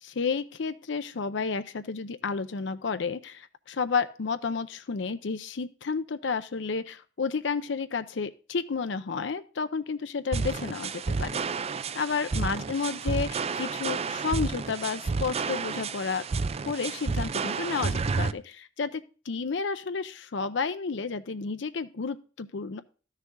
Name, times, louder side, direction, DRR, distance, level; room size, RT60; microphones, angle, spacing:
voice 1, 0.0-11.4 11.9-16.2 16.7-22.8, left 5 dB, 70° left, 11 dB, 0.6 m, -31 dB
sound 1, 10.3-18.3, right 4 dB, 35° right, 0.4 m, -31 dB
12.5 x 6.6 x 3.7 m, 0.38 s
head